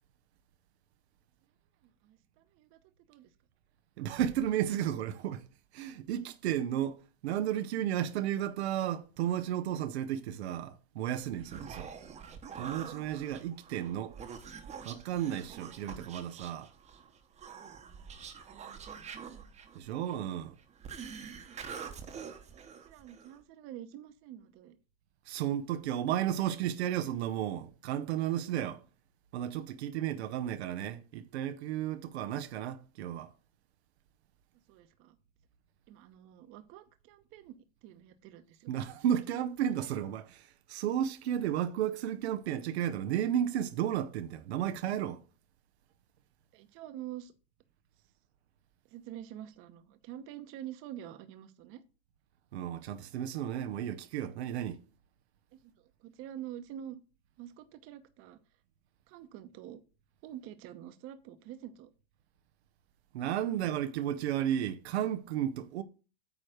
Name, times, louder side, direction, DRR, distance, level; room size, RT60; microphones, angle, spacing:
voice 1, 2.0-2.8 3.1-3.3 22.2-24.8 34.7-35.2 35.9-38.7 46.5-47.3 48.9-51.8 55.5-57.0 57.4-58.4 59.1-59.8 60.2-61.9, right 11 dB, 45° right, 1.0 m, -47 dB
voice 2, 4.0-5.4 5.7-11.9 12.6-14.2 14.8-16.7 19.7-20.6 25.3-28.8 29.3-33.3 38.7-45.2 52.5-54.8 63.1-65.8, right 10 dB, 85° right, 0.8 m, -33 dB
Human voice, 11.2-23.4, right 6 dB, 20° right, 1.0 m, -46 dB
8.9 x 3.2 x 6.3 m
supercardioid pair, 135°, 32 cm